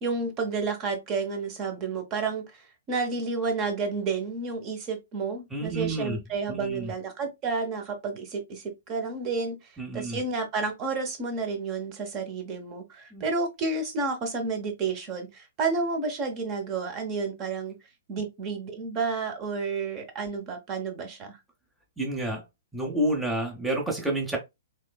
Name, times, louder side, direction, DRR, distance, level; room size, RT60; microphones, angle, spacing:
voice 1, 0.0-2.4 2.9-9.6 9.9-17.7 18.1-21.4, right 4 dB, 35° right, 1.0 m, -30 dB
voice 2, 5.5-6.2 6.5-6.9 9.8-10.2 13.1-13.2 22.0-22.4 22.7-24.4, right 1 dB, 5° right, 0.8 m, -29 dB
3.1 x 3.1 x 2.2 m
hypercardioid pair, 120°, 0 cm